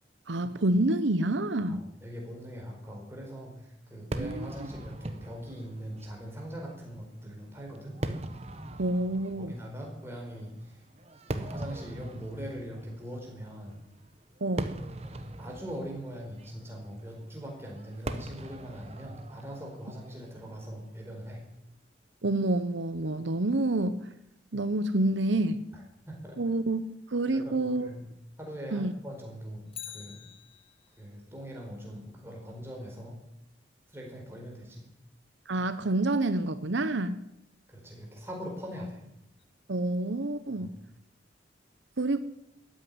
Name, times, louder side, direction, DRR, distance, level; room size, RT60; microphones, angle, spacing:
voice 1, 0.3-1.8 4.2-4.5 8.8-9.5 14.4-14.8 22.2-24.0 24.5-25.6 26.4-26.8 27.1-27.9 28.7-28.9 35.5-37.2 39.7-40.8 42.0-42.2, right 2 dB, 80° right, 12 dB, 0.9 m, -28 dB
voice 2, 1.7-8.0 9.4-10.8 11.4-13.8 15.0-21.4 25.7-26.4 27.3-28.0 28.4-30.2 31.0-33.2 33.9-34.8 37.7-39.0 40.6-40.8, equal, 15° right, -1 dB, 4.5 m, -42 dB
Fireworks, 4.1-21.4, right 1 dB, 35° right, 1.1 m, -41 dB
Bicycle, 29.7-31.1 39.4-39.5, left 10 dB, 30° left, 1.0 m, -45 dB
14.0 x 9.5 x 9.5 m, 0.81 s
head